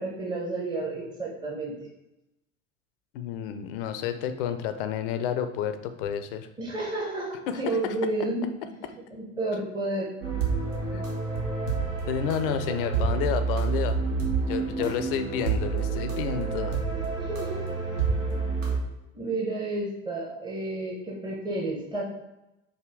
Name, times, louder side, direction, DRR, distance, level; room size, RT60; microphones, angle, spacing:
voice 1, 0.0-1.7 6.6-8.5 9.1-10.1 14.8-15.0 16.9-17.6 19.1-22.0, right 2 dB, 10° right, -3 dB, 0.8 m, -31 dB
voice 2, 3.1-6.5 7.5-7.6 10.9-11.0 12.1-14.0 14.5-16.8, left 9 dB, 50° left, 9 dB, 0.5 m, -30 dB
sound 1, 10.2-18.8, right 4 dB, 75° right, 1.0 m, -28 dB
4.8 x 2.6 x 3.7 m, 0.94 s
figure-of-eight pair, 75°, 38 cm